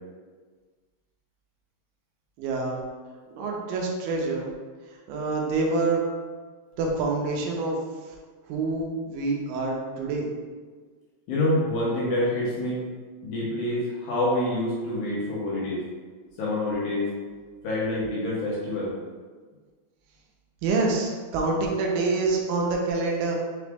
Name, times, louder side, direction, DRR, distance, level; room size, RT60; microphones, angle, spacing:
voice 1, 2.4-2.8 3.3-4.5 4.9-6.1 6.8-7.8 8.0-8.2 8.5-10.3 20.6-23.4, right 3 dB, 85° right, -1 dB, 2.3 m, -26 dB
voice 2, 11.3-12.8 13.2-15.8 16.4-17.1 17.6-18.9, left 1 dB, 70° left, -6 dB, 2.0 m, -26 dB
5.8 x 2.0 x 3.4 m, 1.5 s
omnidirectional pair, 4.0 m